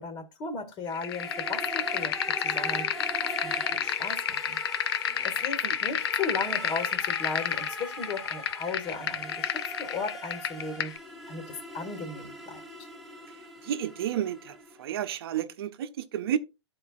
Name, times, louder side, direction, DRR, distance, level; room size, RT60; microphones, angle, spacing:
voice 1, 0.0-2.1 2.4-2.9 3.2-4.6 5.2-10.9 11.3-12.9, left 4 dB, 30° left, 1.9 m, -36 dB
sound 1, 0.9-11.0, left 10 dB, 55° left, 0.6 m, -31 dB
sound 2, 1.1-14.9, right 2 dB, ahead, 1.3 m, -41 dB
voice 2, 13.6-16.4, right 10 dB, 55° right, 0.8 m, -32 dB
13.5 x 4.6 x 2.4 m
figure-of-eight pair, 115°, 15 cm